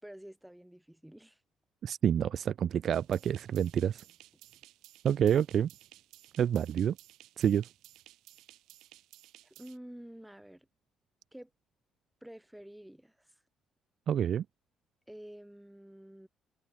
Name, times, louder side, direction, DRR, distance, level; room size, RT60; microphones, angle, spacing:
voice 1, 0.0-1.4 9.4-10.7 11.3-11.5 12.2-13.4 15.1-16.3, right 1 dB, 5° right, 3.5 m, -49 dB
voice 2, 1.8-4.0 5.0-5.7 6.4-7.0 7.4-7.7 14.1-14.4, right 9 dB, 55° right, 0.3 m, -28 dB
sound 1, 2.9-9.8, right 16 dB, 85° right, 5.1 m, -57 dB
cardioid pair, 105°, 0 cm